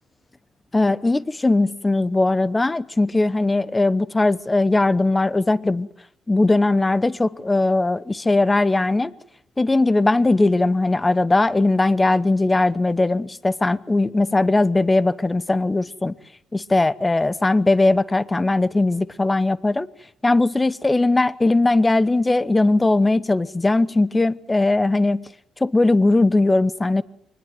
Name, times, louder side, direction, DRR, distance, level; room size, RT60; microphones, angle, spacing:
voice 1, 0.7-5.9 6.3-9.1 9.6-16.1 16.5-19.9 20.2-25.3 25.6-27.0, left 2 dB, 15° left, 0.9 m, -19 dB
24.0 x 20.0 x 7.7 m
cardioid pair, 90°, 0 cm